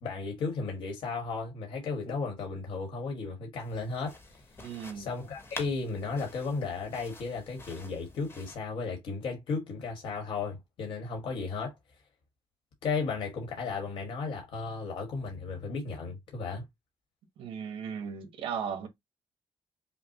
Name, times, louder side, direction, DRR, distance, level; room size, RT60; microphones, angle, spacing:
voice 1, 0.0-4.2 4.9-11.7 12.8-16.6, left 4 dB, 70° left, 1.5 m, -34 dB
sound 1, 3.6-8.6, left 2 dB, 25° left, 1.1 m, -48 dB
voice 2, 4.6-5.1 17.4-18.9, right 7 dB, 80° right, 1.2 m, -36 dB
5.8 x 2.2 x 2.8 m
cardioid pair, 165°, 9 cm